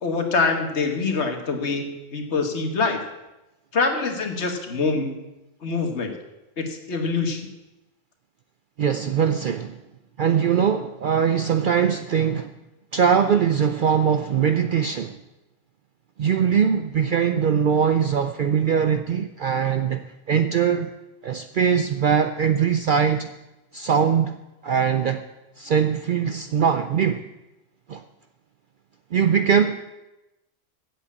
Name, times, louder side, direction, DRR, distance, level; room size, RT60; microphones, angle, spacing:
voice 1, 0.0-3.0 3.7-5.2 5.6-6.1 6.6-7.5, left 4 dB, 65° left, 1.6 m, -25 dB
voice 2, 8.8-9.7 10.2-12.5 12.9-15.2 16.2-20.9 21.2-23.3 23.7-24.4 24.6-25.3 25.6-27.2 27.9-28.0 29.1-29.8, right 7 dB, 60° right, 0.5 m, -21 dB
8.0 x 7.6 x 8.3 m
omnidirectional pair, 1.3 m